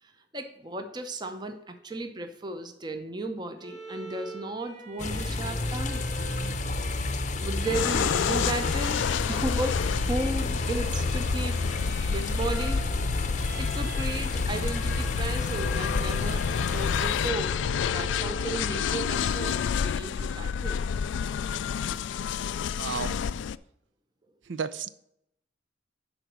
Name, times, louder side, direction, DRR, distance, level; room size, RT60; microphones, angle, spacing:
voice 1, 0.0-6.0 7.4-12.8 13.6-20.9, right 2 dB, 25° right, 0.7 m, -35 dB
Bowed string instrument, 3.6-18.8, right 2 dB, 60° right, 3.9 m, -44 dB
sound 1, 5.0-17.3, left 2 dB, 40° left, 0.6 m, -30 dB
sound 2, 7.7-23.6, left 7 dB, 80° left, 0.3 m, -29 dB
voice 2, 22.8-23.2 24.5-24.9, right 6 dB, 80° right, 0.6 m, -32 dB
10.5 x 4.0 x 6.2 m
head